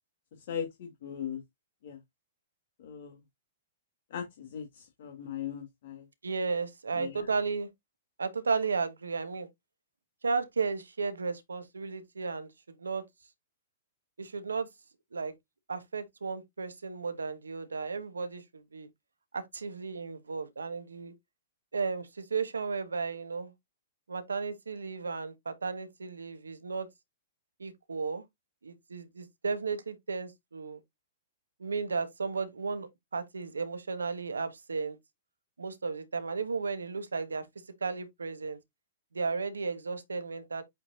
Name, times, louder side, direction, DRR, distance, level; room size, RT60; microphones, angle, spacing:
voice 1, 0.4-1.4 1.8-2.0 2.8-3.2 4.1-6.1 6.9-7.2, left 8 dB, 60° left, 1.7 m, -39 dB
voice 2, 6.2-7.7 8.2-9.5 10.2-13.0 14.2-14.7 15.1-15.3 15.7-18.9 19.3-21.1 21.7-23.5 24.1-26.9 27.6-28.2 28.6-30.8 31.6-35.0 35.6-37.5 37.8-38.6 39.1-40.6, right 4 dB, 80° right, 1.4 m, -34 dB
8.4 x 4.6 x 2.6 m
figure-of-eight pair, 105°, 0 cm